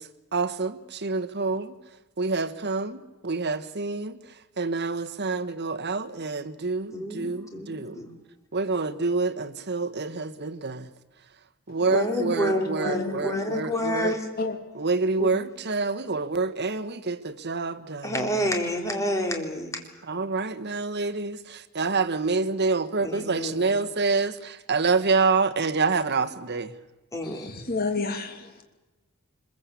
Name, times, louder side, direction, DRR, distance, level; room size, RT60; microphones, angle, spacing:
voice 1, 0.0-1.7 2.2-4.2 4.6-8.0 8.5-10.9 11.7-14.2 14.7-18.3 20.1-26.7, right 4 dB, 50° right, 1.3 m, -27 dB
voice 2, 6.9-8.1 11.9-14.2 15.2-15.3 18.0-19.8 23.0-23.8 27.1-27.5, equal, 15° left, 3.8 m, -29 dB
voice 3, 12.2-14.1 14.4-14.6 27.3-28.5, left 3 dB, 45° left, 3.0 m, -32 dB
25.0 x 22.0 x 8.5 m
head